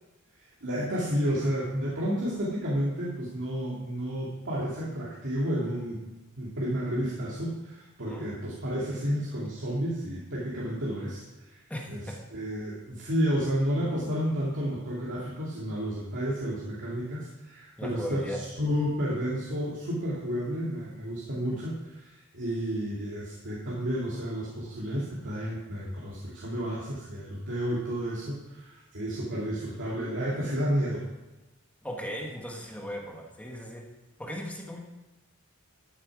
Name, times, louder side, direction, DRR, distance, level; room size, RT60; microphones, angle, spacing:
voice 1, 0.6-6.0 6.4-11.2 11.5-11.6 11.9-12.0 12.3-31.0, equal, 55° right, -6 dB, 2.6 m, -31 dB
voice 2, 11.7-12.1 17.8-18.4 31.8-33.8 34.2-34.8, equal, 5° left, 0 dB, 1.6 m, -37 dB
13.0 x 9.0 x 4.8 m, 1.1 s
head